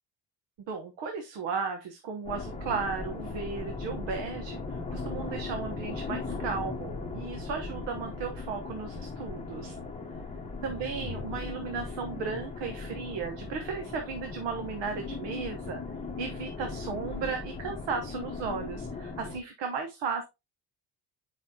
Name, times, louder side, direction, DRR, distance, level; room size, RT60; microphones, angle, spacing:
voice 1, 0.7-9.8 10.6-15.8 16.2-20.2, right 5 dB, 90° right, 5 dB, 1.2 m, -35 dB
sound 1, 2.3-19.4, left 3 dB, 15° left, 1.0 m, -38 dB
7.7 x 5.7 x 2.8 m, 0.24 s
cardioid pair, 165°, 42 cm